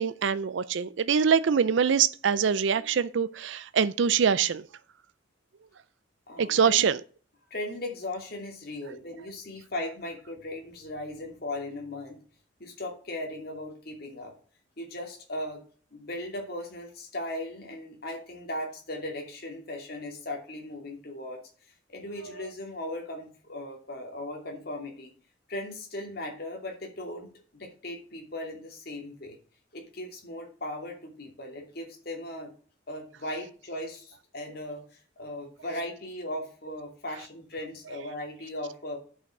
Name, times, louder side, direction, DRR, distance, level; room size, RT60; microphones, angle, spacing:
voice 1, 0.0-4.6 6.4-7.0, right 7 dB, 75° right, 0.5 m, -24 dB
voice 2, 6.3-6.9 7.5-12.2 12.6-14.3 14.8-15.6 15.9-21.4 21.9-25.1 25.5-29.4 29.7-32.5 32.9-39.0, left 1 dB, 55° left, 2.7 m, -38 dB
8.7 x 5.7 x 5.9 m
head